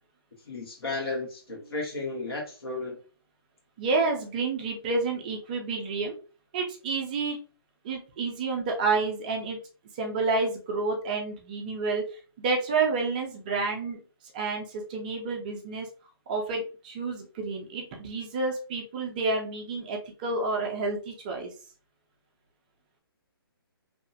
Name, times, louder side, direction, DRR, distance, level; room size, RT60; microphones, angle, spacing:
voice 1, 0.5-3.0, left 3 dB, 75° left, 1 dB, 1.3 m, -33 dB
voice 2, 3.8-6.1 6.5-7.4 7.8-9.6 9.9-12.0 12.4-14.0 14.3-15.9 16.3-21.5, right 3 dB, 20° right, 1 dB, 0.4 m, -29 dB
2.7 x 2.0 x 2.7 m, 0.37 s
hypercardioid pair, 155°, 13 cm